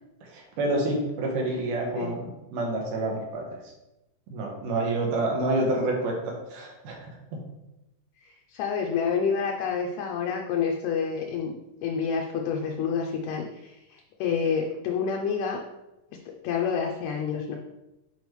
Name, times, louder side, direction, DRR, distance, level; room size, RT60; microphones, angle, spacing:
voice 1, 0.2-3.5 4.3-7.4, right 2 dB, 90° right, -1 dB, 2.7 m, -28 dB
voice 2, 8.2-11.5 11.8-15.6 16.3-17.6, left 6 dB, 75° left, 1 dB, 1.9 m, -28 dB
7.0 x 4.7 x 3.1 m, 0.96 s
omnidirectional pair, 3.5 m